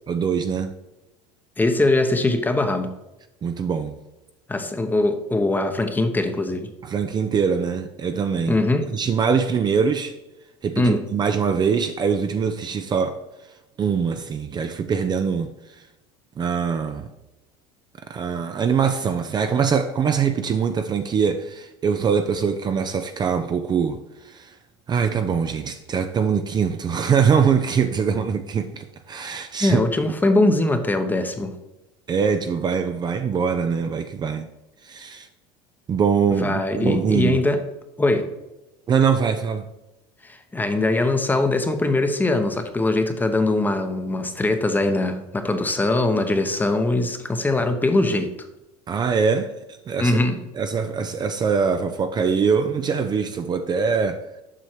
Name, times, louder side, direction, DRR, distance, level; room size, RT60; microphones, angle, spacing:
voice 1, 0.1-0.8 3.4-4.0 6.8-8.5 8.9-10.1 10.6-13.2 13.8-15.5 16.4-17.1 18.1-24.6 24.9-29.8 32.1-34.5 34.8-35.3 35.9-37.4 38.9-39.7 48.9-49.5 49.9-50.2 50.5-54.2, right 6 dB, 30° right, 0.5 m, -23 dB
voice 2, 1.6-2.9 4.5-6.7 8.5-8.9 10.8-11.0 29.6-31.5 36.4-37.6 38.0-38.3 40.2-48.3 50.0-50.4, left 2 dB, 15° left, 0.9 m, -21 dB
7.6 x 5.4 x 4.6 m
supercardioid pair, 105°, 14 cm